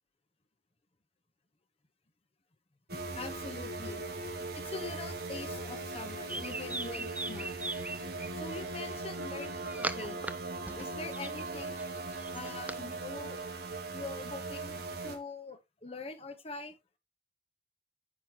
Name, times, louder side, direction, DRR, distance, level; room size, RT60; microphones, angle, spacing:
sound 1, 2.9-15.2, right 2 dB, 60° right, 1.8 m, -39 dB
voice 1, 3.1-4.0 4.5-7.5 8.3-10.2 10.8-11.9 12.3-13.4 13.9-16.8, left 3 dB, 35° left, 1.2 m, -44 dB
sound 2, 6.0-8.3 9.1-10.3 10.6-12.8, right 2 dB, 10° right, 0.4 m, -40 dB
9.1 x 5.7 x 3.1 m
head